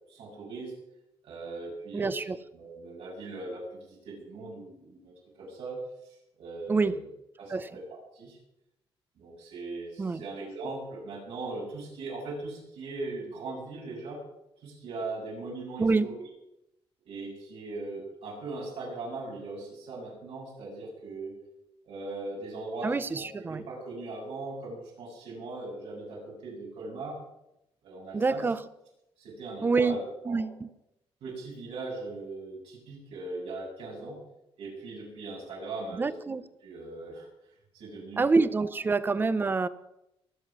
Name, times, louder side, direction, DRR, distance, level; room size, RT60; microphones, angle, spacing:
voice 1, 0.1-0.7 1.2-2.2 2.5-5.8 6.0-7.0 7.4-7.8 8.1-8.4 9.2-14.2 14.6-16.2 17.0-21.3 21.8-27.2 27.8-28.5 29.2-30.4 31.2-34.2 34.6-36.1 36.6-37.3 37.7-38.3, right 2 dB, 80° right, -2 dB, 7.2 m, -39 dB
voice 2, 1.9-2.4 6.7-7.0 7.5-7.7 10.0-10.2 15.8-16.1 22.8-23.6 28.1-28.6 29.6-30.0 30.3-30.7 36.0-36.4 38.2-39.7, right 4 dB, 20° right, 15 dB, 0.6 m, -26 dB
23.0 x 7.9 x 6.1 m, 0.85 s
cardioid pair, 160°, 10 cm